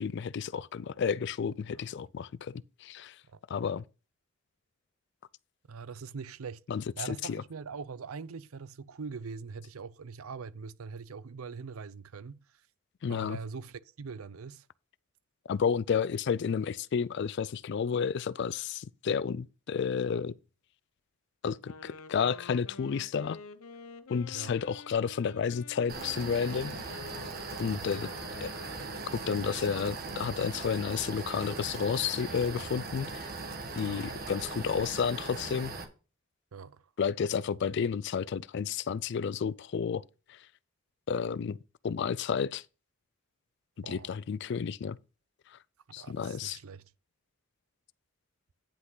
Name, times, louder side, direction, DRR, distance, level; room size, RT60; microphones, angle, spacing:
voice 1, 0.0-3.2 3.5-3.8 6.7-7.4 13.0-13.4 15.5-20.4 21.4-23.4 24.1-26.7 27.6-28.1 28.4-28.5 29.1-33.3 33.8-35.7 37.0-40.0 40.3-40.4 41.1-41.6 41.8-42.6 43.9-45.0 45.9-46.6, left 6 dB, 55° left, 0.3 m, -31 dB
voice 2, 5.7-6.6 7.0-12.4 13.1-14.7 24.3-24.5 27.6-28.0 33.8-34.1 36.5-36.8 43.8-44.1 46.0-46.8, right 5 dB, 85° right, 0.6 m, -42 dB
Wind instrument woodwind instrument, 21.6-29.5, left 3 dB, 85° left, 0.7 m, -49 dB
sound 1, 25.9-35.8, right 3 dB, 45° right, 1.5 m, -39 dB
10.0 x 5.9 x 3.9 m
head